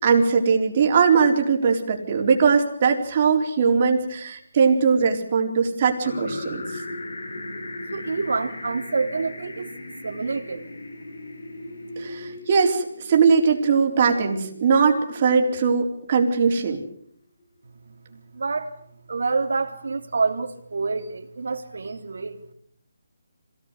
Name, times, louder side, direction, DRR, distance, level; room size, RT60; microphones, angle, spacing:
voice 1, 0.0-6.6 12.0-16.8, right 5 dB, 30° right, 3 dB, 4.1 m, -20 dB
Falling through space, 6.0-15.9, left 2 dB, 80° left, 5.5 m, -38 dB
voice 2, 7.9-9.8 10.0-10.7 12.1-12.2 17.9-18.7 19.1-22.4, right 4 dB, 70° right, 5 dB, 3.5 m, -27 dB
26.5 x 18.5 x 8.2 m, 0.67 s
hypercardioid pair, 170°, 0 cm